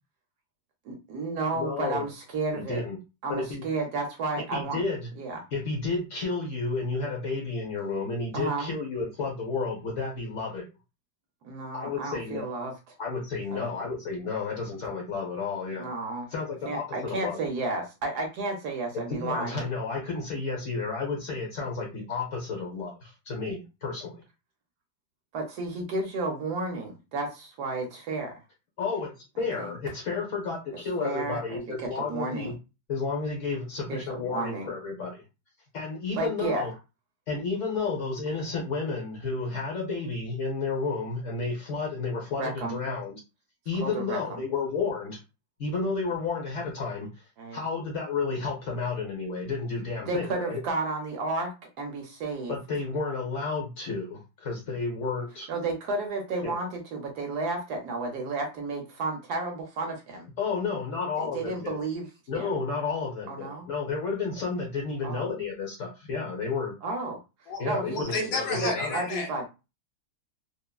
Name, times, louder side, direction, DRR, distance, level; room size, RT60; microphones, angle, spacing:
voice 1, 0.8-2.8 3.2-4.8 5.2-5.4 8.3-8.7 11.4-12.9 13.5-13.7 15.8-16.3 16.6-19.7 25.3-28.4 29.5-29.7 31.0-32.5 33.9-34.7 36.1-36.7 42.4-42.8 43.8-44.4 47.4-47.6 50.1-52.6 55.5-60.3 61.2-62.1 62.3-62.6 63.3-63.7 65.0-65.3 66.8-67.2 67.6-68.3 68.6-69.5, right 3 dB, 70° right, 2 dB, 1.0 m, -32 dB
voice 2, 1.5-2.1 2.5-3.0 3.3-3.6 4.5-5.1 5.5-10.7 11.7-12.5 13.0-15.9 16.3-17.4 19.2-24.2 28.8-29.1 29.4-32.5 32.9-35.2 35.7-36.7 37.3-43.2 43.7-45.2 45.6-47.1 47.5-50.6 52.5-55.5 56.4-56.5 60.4-61.8 62.3-66.8 67.6-69.0, left 4 dB, 55° left, 0 dB, 0.9 m, -31 dB
voice 3, 67.9-69.3, left 3 dB, 90° left, 2 dB, 1.5 m, -31 dB
3.5 x 2.0 x 2.2 m, 0.28 s
omnidirectional pair, 2.0 m